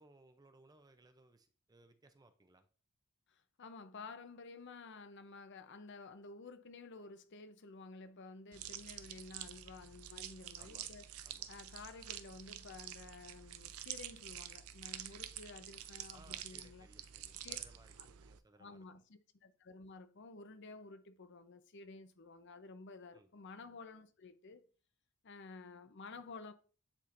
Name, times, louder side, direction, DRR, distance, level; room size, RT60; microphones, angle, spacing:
voice 1, 0.0-2.7 10.6-10.9 11.2-11.5 16.1-19.0 23.1-23.3, right 2 dB, 15° right, 0.5 m, -64 dB
voice 2, 3.3-11.1 11.5-16.9 17.4-17.6 18.0-18.1 18.6-24.7 25.2-26.5, left 3 dB, 55° left, 0.6 m, -52 dB
sound 1, 8.5-18.4, right 11 dB, 75° right, 0.5 m, -48 dB
9.8 x 4.3 x 2.5 m
head